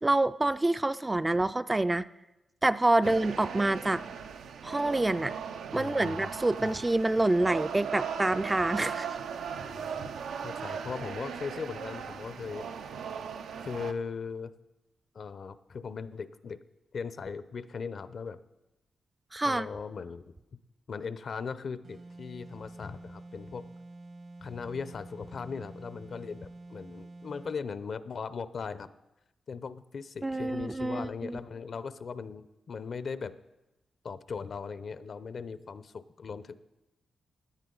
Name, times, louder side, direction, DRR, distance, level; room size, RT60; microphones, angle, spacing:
voice 1, 0.0-2.1 2.6-4.0 4.6-5.3 5.7-9.1 19.3-19.7 30.2-31.4, right 2 dB, 20° right, 12 dB, 0.3 m, -27 dB
sound 1, 3.0-13.9, right 7 dB, 85° right, 0.5 m, -38 dB
voice 2, 5.7-6.3 6.6-6.8 9.6-12.7 13.6-14.5 15.1-16.6 16.9-18.4 19.5-20.2 20.9-23.7 24.4-28.9 29.5-33.4 34.0-36.6, left 5 dB, 60° left, 14 dB, 0.6 m, -39 dB
sound 2, 21.8-27.6, right 2 dB, 65° right, 1.4 m, -48 dB
17.0 x 10.0 x 3.9 m, 0.99 s
cardioid pair, 70°, 0 cm